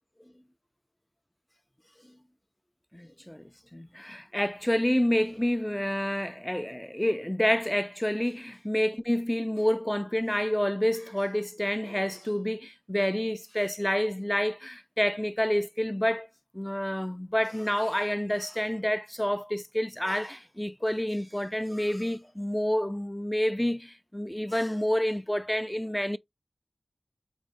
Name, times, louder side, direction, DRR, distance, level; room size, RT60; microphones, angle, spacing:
voice 1, 2.9-16.3 16.5-26.2, equal, 10° left, 0.4 m, -28 dB
3.5 x 3.1 x 3.9 m
wide cardioid pair, 55°, 0 cm